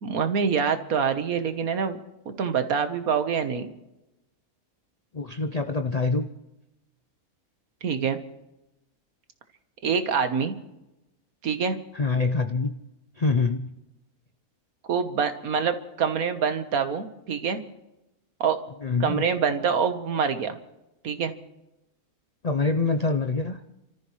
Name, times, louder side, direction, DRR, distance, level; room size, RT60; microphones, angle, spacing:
voice 1, 0.0-2.0 2.3-3.7 7.8-8.2 9.8-10.5 11.4-11.8 14.9-17.6 18.4-18.6 19.0-20.6 21.0-21.3, right 6 dB, 75° right, 9 dB, 1.7 m, -25 dB
voice 2, 5.1-6.3 11.9-12.8 13.2-13.7 18.8-19.2 22.4-23.6, left 3 dB, 40° left, 7 dB, 0.6 m, -25 dB
29.5 x 14.0 x 3.2 m, 0.94 s
omnidirectional pair, 1.5 m